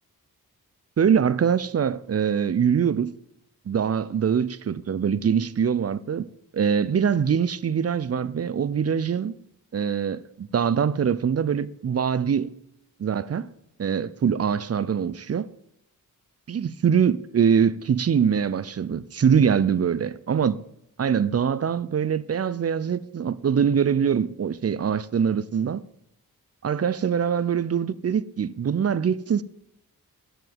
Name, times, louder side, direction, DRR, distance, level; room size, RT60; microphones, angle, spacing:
voice 1, 1.0-3.1 3.7-6.3 6.5-9.3 9.7-12.5 13.0-13.5 13.8-15.5 16.5-20.6 21.0-25.8 26.6-29.4, right 7 dB, 40° right, 0.5 m, -23 dB
7.8 x 6.9 x 8.0 m
cardioid pair, 55°, 37 cm